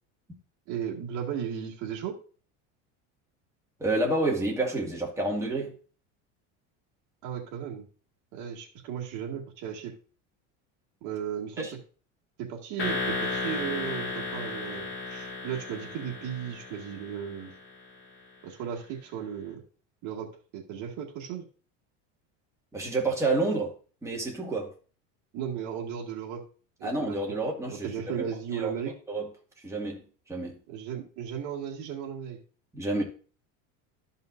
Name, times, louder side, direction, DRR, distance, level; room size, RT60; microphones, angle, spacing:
voice 1, 0.7-2.2 7.2-7.9 8.3-9.9 11.0-11.8 12.4-17.5 18.4-19.6 20.0-21.4 25.3-26.4 26.8-27.2 27.7-28.9 30.7-32.4, right 8 dB, 55° right, 2.0 m, -35 dB
voice 2, 3.8-5.7 11.6-11.7 22.7-23.7 24.0-24.7 26.8-28.3 28.5-28.7 29.1-29.3 29.6-30.0 30.3-30.6 32.7-33.0, right 2 dB, 10° right, 2.0 m, -29 dB
sound 1, 12.8-17.7, left 3 dB, 35° left, 2.2 m, -34 dB
13.0 x 5.6 x 2.6 m
cardioid pair, 140°, 36 cm